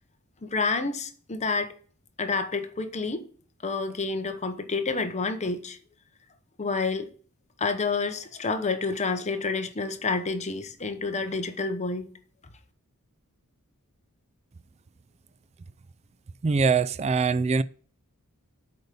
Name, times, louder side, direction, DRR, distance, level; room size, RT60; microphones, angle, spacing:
voice 1, 0.4-1.7 2.2-3.3 3.6-5.8 6.6-7.1 7.6-12.1, left 4 dB, 30° left, 1.0 m, -29 dB
voice 2, 16.4-17.6, right 4 dB, 30° right, 0.3 m, -23 dB
8.0 x 5.1 x 6.8 m
head